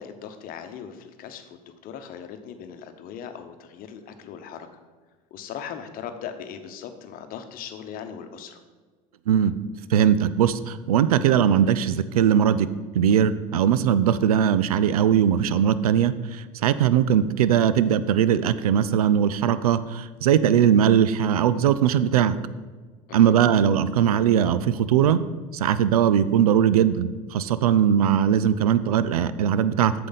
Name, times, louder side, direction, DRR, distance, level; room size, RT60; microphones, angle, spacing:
voice 1, 0.0-4.7 5.3-8.6 23.1-23.3, left 8 dB, 50° left, 8 dB, 1.0 m, -39 dB
voice 2, 9.9-12.7 12.9-22.4 23.1-25.2 25.5-29.9, right 9 dB, 85° right, 15 dB, 0.4 m, -20 dB
8.5 x 6.8 x 4.1 m, 1.4 s
hypercardioid pair, 80°, 18 cm